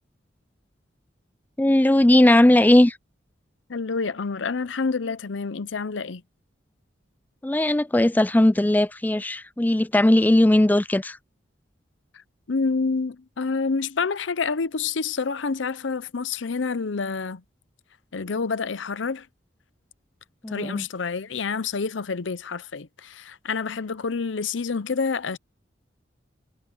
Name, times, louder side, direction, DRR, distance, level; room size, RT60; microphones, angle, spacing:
voice 1, 1.6-3.0 7.4-11.2 20.4-20.9, left 1 dB, 10° left, 0.4 m, -18 dB
voice 2, 3.7-6.2 12.1-12.2 12.5-17.4 18.1-19.3 20.5-25.4, left 4 dB, 85° left, 0.7 m, -28 dB
head